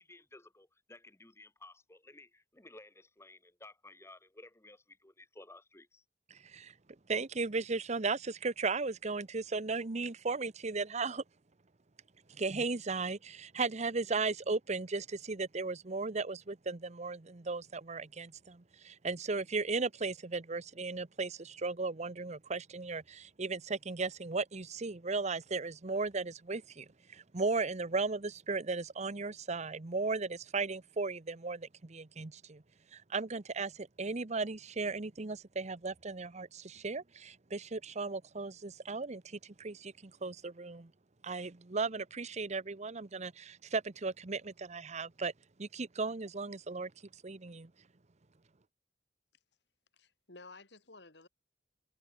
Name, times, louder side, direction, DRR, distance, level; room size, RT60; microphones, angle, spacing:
voice 1, 0.0-6.0, left 2 dB, 15° left, 2.1 m, -56 dB
voice 2, 6.3-6.7 7.1-11.2 12.3-32.6 32.9-40.9 41.2-45.3 45.6-46.9 47.2-47.7, right 4 dB, 40° right, 0.9 m, -36 dB
voice 3, 50.0-51.3, left 3 dB, 70° left, 3.3 m, -54 dB
head